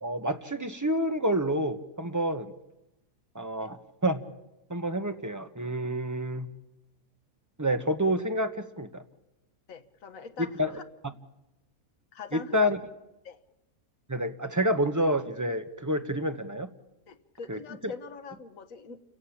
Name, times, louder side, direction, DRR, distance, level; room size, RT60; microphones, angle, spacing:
voice 1, 0.0-2.5 3.3-4.2 4.7-6.5 7.6-9.0 10.6-10.7 11.0-11.1 12.3-12.8 14.1-16.7 17.5-17.9, equal, 15° right, 7 dB, 1.1 m, -28 dB
voice 2, 9.7-10.8 12.1-12.8 13.2-13.4 17.1-19.0, left 5 dB, 65° left, 6 dB, 1.7 m, -43 dB
29.5 x 17.5 x 8.7 m, 0.96 s
omnidirectional pair, 1.5 m